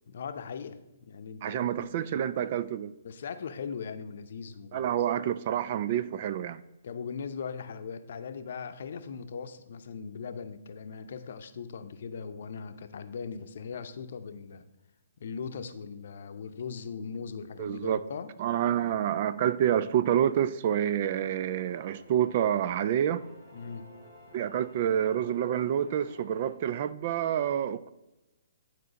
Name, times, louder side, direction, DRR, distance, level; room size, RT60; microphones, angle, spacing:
voice 1, 0.1-1.9 3.0-4.9 6.8-14.6 15.2-18.3 23.5-23.9, left 6 dB, 60° left, 0.7 m, -39 dB
voice 2, 1.4-2.9 4.7-6.6 17.6-18.0 18.4-23.2 24.3-27.9, right 10 dB, 45° right, 0.4 m, -28 dB
sound 1, 21.2-26.5, equal, 85° right, 2.4 m, -53 dB
10.0 x 4.5 x 4.0 m
hypercardioid pair, 140°, 0 cm